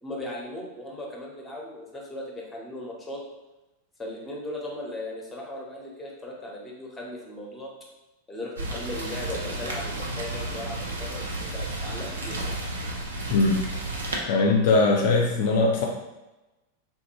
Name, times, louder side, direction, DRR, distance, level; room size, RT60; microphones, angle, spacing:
voice 1, 0.0-3.2 4.0-7.7 8.3-12.5, left 1 dB, 10° left, -2 dB, 0.9 m, -37 dB
Rain, 8.6-14.2, right 2 dB, 70° right, 0.6 m, -32 dB
voice 2, 13.3-13.6 14.3-15.8, left 3 dB, 50° left, 1 dB, 0.4 m, -20 dB
3.6 x 2.5 x 3.0 m, 1.0 s
figure-of-eight pair, 90°, 0 cm